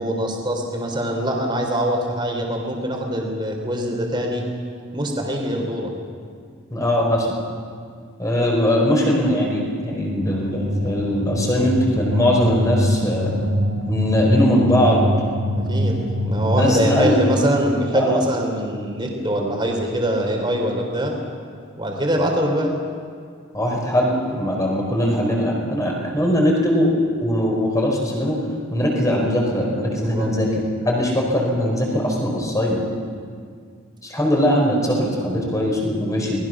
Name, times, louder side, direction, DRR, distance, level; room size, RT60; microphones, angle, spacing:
voice 1, 0.0-4.4 4.9-5.9 15.7-16.0 16.3-21.1 21.8-22.7 29.9-30.3, equal, 20° right, 2 dB, 3.8 m, -23 dB
voice 2, 6.7-7.3 8.2-13.3 13.9-15.0 16.5-17.1 17.9-18.2 23.5-26.9 27.2-28.4 28.7-32.9 34.0-36.4, equal, 15° left, -1 dB, 4.9 m, -20 dB
sound 1, 10.1-17.4, equal, 90° right, 3.8 m, -24 dB
29.5 x 20.5 x 6.2 m, 2.1 s
head